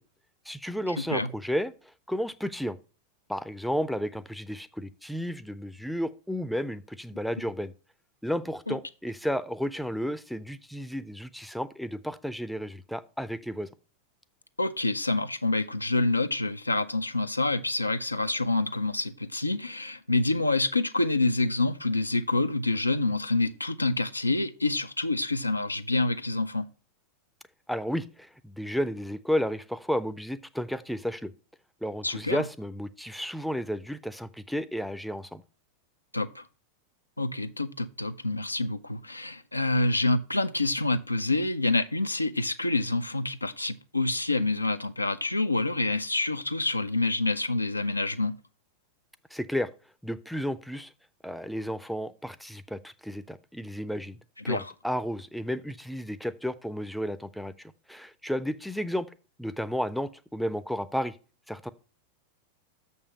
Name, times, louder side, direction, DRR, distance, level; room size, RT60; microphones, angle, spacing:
voice 1, 0.5-2.8 3.3-7.7 8.2-13.7 27.7-31.3 31.8-35.4 49.3-49.7 50.0-50.9 51.2-54.2 54.4-59.1 59.4-61.2 61.5-61.7, equal, ahead, 0.5 m, -32 dB
voice 2, 1.0-1.3 8.7-8.8 14.6-26.7 32.0-32.4 36.1-36.5 37.2-48.4 54.5-54.7, left 2 dB, 85° left, 0.5 m, -27 dB
6.8 x 5.4 x 6.4 m
figure-of-eight pair, 90°, 0 cm